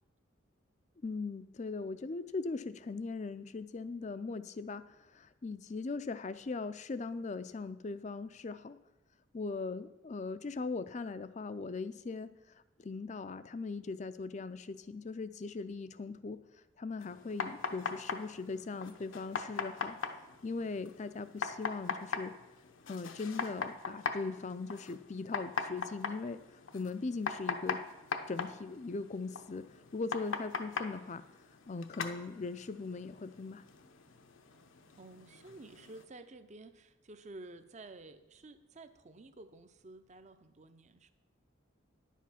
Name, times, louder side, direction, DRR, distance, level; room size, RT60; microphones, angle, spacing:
voice 1, 1.0-8.8 9.3-12.3 12.8-16.4 16.8-20.0 20.4-22.3 22.9-26.4 26.7-27.8 28.3-29.6 29.9-31.2 31.7-33.6, left 4 dB, 35° left, 13 dB, 0.4 m, -39 dB
sound 1, 17.0-36.0, left 4 dB, 75° left, 0.8 m, -41 dB
voice 2, 35.0-41.1, right 2 dB, 35° right, 11 dB, 0.6 m, -52 dB
10.5 x 7.4 x 5.7 m, 1.0 s
head